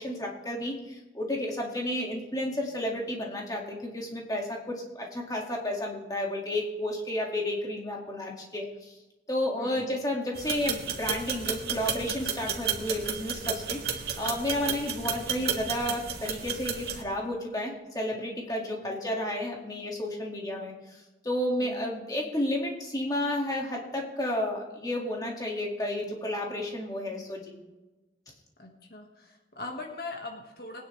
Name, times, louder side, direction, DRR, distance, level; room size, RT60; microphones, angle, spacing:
voice 1, 0.0-9.0 9.3-27.6, left 1 dB, 20° left, -1 dB, 2.1 m, -32 dB
voice 2, 9.6-10.0 18.6-18.9 21.6-21.8 28.6-30.8, left 2 dB, 60° left, 1 dB, 1.7 m, -41 dB
sound 1, 10.3-17.0, right 7 dB, 65° right, 1.8 m, -33 dB
21.5 x 9.8 x 3.3 m, 1.1 s
head